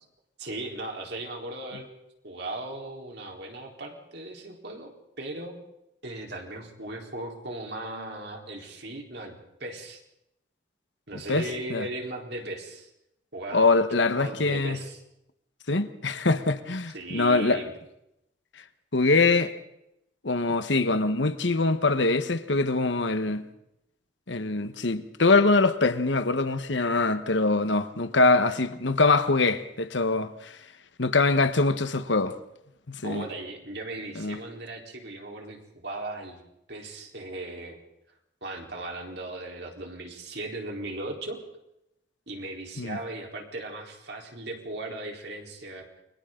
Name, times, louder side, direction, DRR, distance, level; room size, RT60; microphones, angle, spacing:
voice 1, 0.4-1.9 2.2-4.9 5.2-5.5 6.0-10.0 11.1-12.9 13.3-13.9 14.2-15.0 16.9-17.7 33.0-36.4 36.7-37.8 38.4-41.4 42.3-45.9, right 2 dB, 60° right, 4.2 m, -37 dB
voice 2, 11.3-11.8 13.5-14.8 15.7-17.6 18.9-19.5 20.2-23.4 24.3-30.6 31.0-32.4 32.9-33.3 34.1-34.4 42.8-43.0, left 3 dB, 75° left, 1.3 m, -23 dB
29.5 x 23.5 x 3.9 m
head